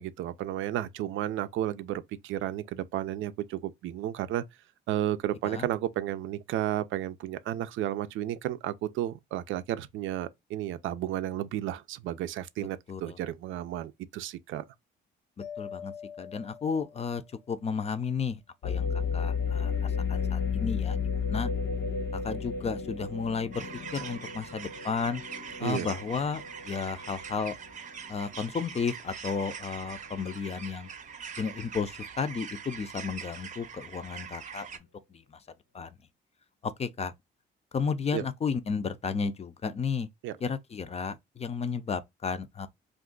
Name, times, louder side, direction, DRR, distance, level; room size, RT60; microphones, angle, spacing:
voice 1, 0.0-4.4 4.9-14.6 25.6-25.9 38.1-38.3 40.2-40.4, right 12 dB, 85° right, 0.5 m, -32 dB
voice 2, 12.6-13.2 15.6-15.9 16.2-17.2 17.5-18.9 19.1-21.5 22.2-23.7 23.9-25.2 25.6-27.6 28.1-30.9 31.4-34.7 35.1-35.4 35.7-35.9 36.6-37.1 37.7-40.1 40.4-42.7, left 5 dB, 30° left, 0.5 m, -33 dB
Mallet percussion, 15.4-17.5, left 8 dB, 90° left, 1.1 m, -44 dB
sound 1, 18.6-28.6 29.1-29.2 29.8-30.2, left 6 dB, 65° left, 0.9 m, -33 dB
sound 2, 23.5-34.8, right 7 dB, 40° right, 0.6 m, -43 dB
2.5 x 2.3 x 3.7 m
cardioid pair, 90°, 20 cm